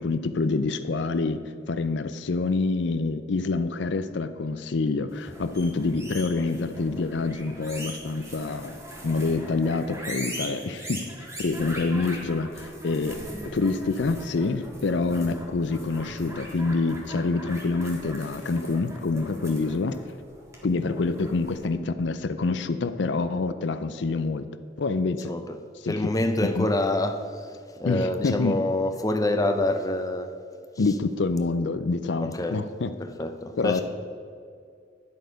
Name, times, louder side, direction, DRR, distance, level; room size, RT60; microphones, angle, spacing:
voice 1, 0.0-1.4 1.7-11.1 11.4-13.2 13.5-20.0 20.6-25.3 25.8-25.9 26.4-26.7 27.8-28.6 30.8-32.9 33.6-33.8, left 3 dB, 65° left, 11 dB, 0.5 m, -27 dB
sound 1, 5.1-21.7, equal, 15° right, 1.8 m, -41 dB
voice 2, 25.2-25.6 25.9-30.3 32.2-32.6 33.0-33.8, left 1 dB, 20° left, 6 dB, 0.6 m, -27 dB
10.5 x 7.8 x 5.2 m, 2.3 s
head